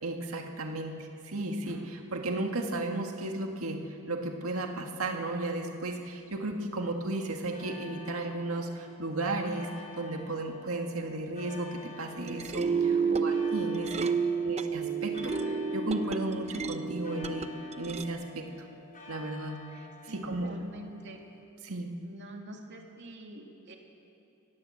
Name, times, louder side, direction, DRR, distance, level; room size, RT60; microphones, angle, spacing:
voice 1, 0.0-14.1 14.4-17.5 17.8-18.5 19.1-19.8 20.1-20.6 21.6-21.9, right 2 dB, 80° right, 3 dB, 1.8 m, -34 dB
sound 1, 7.5-21.4, left 4 dB, 40° left, 4.8 m, -50 dB
sound 2, 12.1-18.0, right 5 dB, 30° right, 0.8 m, -31 dB
voice 2, 12.9-13.3 14.2-14.5 20.1-21.2 22.0-23.8, right 1 dB, 55° right, 2 dB, 2.6 m, -46 dB
26.0 x 18.0 x 7.7 m, 3.0 s
head